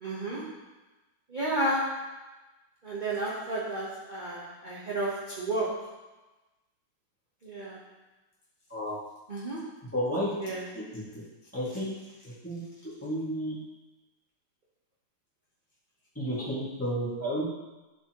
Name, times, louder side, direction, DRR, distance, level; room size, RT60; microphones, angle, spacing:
voice 1, 0.0-0.4 1.3-1.8 2.8-5.1 5.4-5.7 7.4-7.8 9.3-9.6 10.4-10.6, right 2 dB, 30° right, -8 dB, 1.1 m, -31 dB
voice 2, 9.9-10.3 11.5-11.9 12.2-12.6 13.0-13.5 16.2-17.5, equal, 5° left, -8 dB, 1.9 m, -31 dB
12.0 x 4.3 x 3.0 m, 1.1 s
omnidirectional pair, 2.1 m